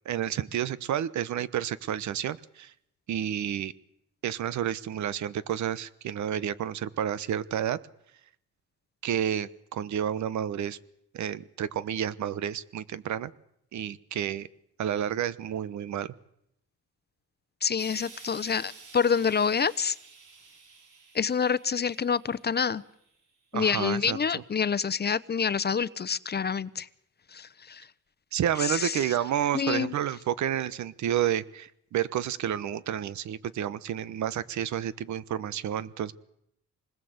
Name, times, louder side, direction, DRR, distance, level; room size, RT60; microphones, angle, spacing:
voice 1, 0.0-2.7 3.1-3.7 4.2-7.8 9.0-10.8 11.1-13.3 13.7-14.5 14.8-16.1 23.5-24.4 28.3-36.1, right 10 dB, 70° right, 17 dB, 1.2 m, -30 dB
voice 2, 17.6-20.0 21.1-22.8 23.5-26.9 27.3-27.9 28.6-29.2 29.5-29.9, left 6 dB, 35° left, 17 dB, 0.9 m, -27 dB
Explosion, 17.8-23.1 23.9-24.0, right 4 dB, 85° right, 5.2 m, -51 dB
26.5 x 20.5 x 8.1 m, 0.76 s
cardioid pair, 90°, 30 cm